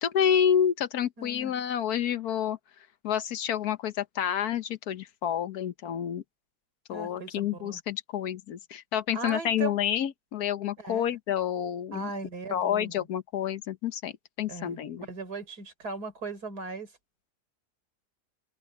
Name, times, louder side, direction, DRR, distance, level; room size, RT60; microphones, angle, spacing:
voice 1, 0.0-2.6 3.0-6.2 6.9-12.1 12.5-15.1, left 9 dB, 75° left, 1.4 m, -29 dB
voice 2, 1.2-1.5 6.9-7.8 9.1-9.8 10.8-11.2 11.9-13.1 14.5-16.9, right 3 dB, 80° right, 4.4 m, -38 dB
open air
omnidirectional pair, 1.7 m